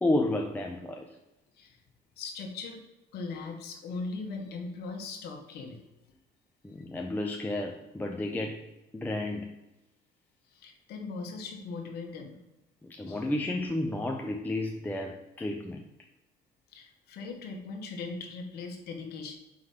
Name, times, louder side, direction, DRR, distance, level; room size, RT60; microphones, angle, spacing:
voice 1, 0.0-1.2 6.6-8.6 8.9-9.6 12.8-15.8, left 1 dB, 10° left, 2 dB, 0.5 m, -31 dB
voice 2, 2.2-2.8 3.1-5.8 10.5-12.4 13.1-13.3 16.7-19.4, left 4 dB, 75° left, 3 dB, 1.2 m, -39 dB
4.9 x 3.9 x 5.4 m, 0.97 s
cardioid pair, 110°, 17 cm